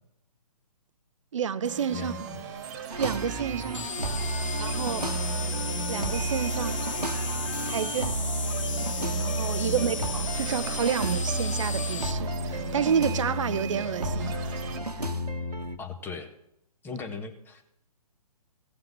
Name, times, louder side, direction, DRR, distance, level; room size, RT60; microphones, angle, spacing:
voice 1, 1.3-2.3 3.0-3.9 4.6-5.1 5.9-6.8 7.6-8.2 9.2-14.4 15.0-15.1, right 8 dB, 55° right, 0.8 m, -30 dB
sound 1, 1.6-14.8, right 5 dB, 30° right, 1.9 m, -39 dB
voice 2, 1.9-2.4 9.6-9.9 15.8-16.3 16.8-17.6, left 5 dB, 10° left, 1.4 m, -39 dB
sound 2, 2.9-15.8, right 1 dB, 85° right, 1.2 m, -31 dB
sound 3, 3.7-12.1, left 7 dB, 55° left, 0.7 m, -36 dB
16.5 x 5.7 x 9.4 m
figure-of-eight pair, 130°, 20 cm